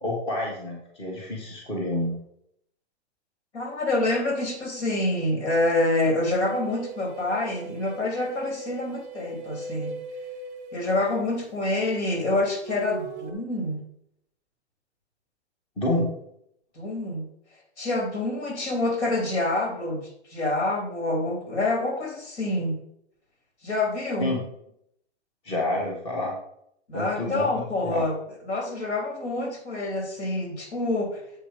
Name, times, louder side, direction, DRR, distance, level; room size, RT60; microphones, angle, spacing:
voice 1, 0.0-2.1 15.8-16.1 24.2-24.4 25.4-26.3 26.9-28.0, left 1 dB, 15° left, -2 dB, 1.5 m, -28 dB
voice 2, 3.5-9.9 10.7-13.8 16.7-17.2 17.8-22.8 23.6-24.4 26.9-28.2 28.5-31.2, left 2 dB, 75° left, 1 dB, 3.4 m, -27 dB
sound 1, 6.3-11.8 12.6-13.3, right 4 dB, 15° right, 0.3 m, -39 dB
7.6 x 5.0 x 5.2 m, 0.75 s
hypercardioid pair, 155°, 34 cm